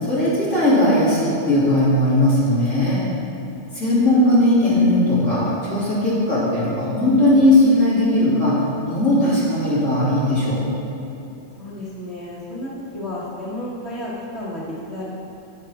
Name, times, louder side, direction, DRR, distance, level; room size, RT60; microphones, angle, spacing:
voice 1, 0.0-3.0 3.7-8.6 8.9-10.6, left 1 dB, 25° left, -10 dB, 2.3 m, -18 dB
voice 2, 11.6-15.0, left 1 dB, 60° right, -10 dB, 0.6 m, -32 dB
10.0 x 8.3 x 3.4 m, 2.9 s
omnidirectional pair, 3.5 m